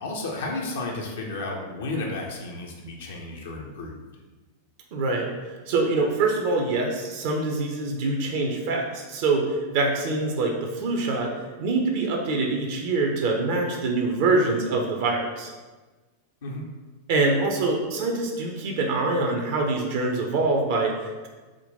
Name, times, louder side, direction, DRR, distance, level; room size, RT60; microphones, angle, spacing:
voice 1, 0.0-4.0 16.4-16.6, left 2 dB, 60° left, -1 dB, 0.5 m, -32 dB
voice 2, 4.9-5.3 5.7-11.3 11.6-15.5 17.1-21.3, right 3 dB, 50° right, 1 dB, 0.5 m, -25 dB
3.6 x 2.2 x 4.0 m, 1.3 s
figure-of-eight pair, 90°, 0 cm